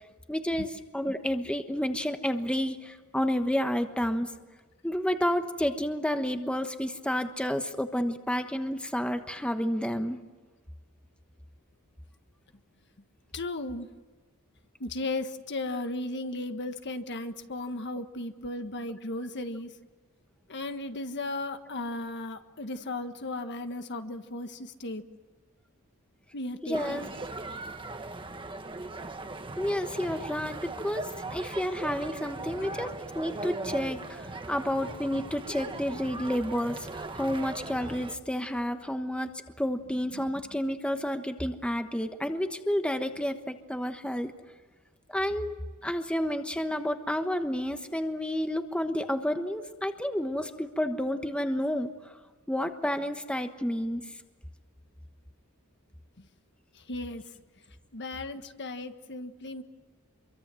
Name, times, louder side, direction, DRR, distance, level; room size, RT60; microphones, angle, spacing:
voice 1, 0.3-4.3 4.8-10.2 26.6-27.0 29.6-44.3 45.1-51.9 52.5-54.0, equal, 5° left, 7 dB, 1.2 m, -30 dB
voice 2, 13.3-13.9 14.8-19.7 20.5-25.0 26.3-27.1 32.6-32.9 40.1-40.3 56.2-56.3 56.7-57.3 57.7-59.6, left 2 dB, 55° left, 8 dB, 1.5 m, -36 dB
sound 1, 26.7-38.2, right 2 dB, 25° right, 1.3 m, -39 dB
27.0 x 23.5 x 7.7 m, 1.4 s
head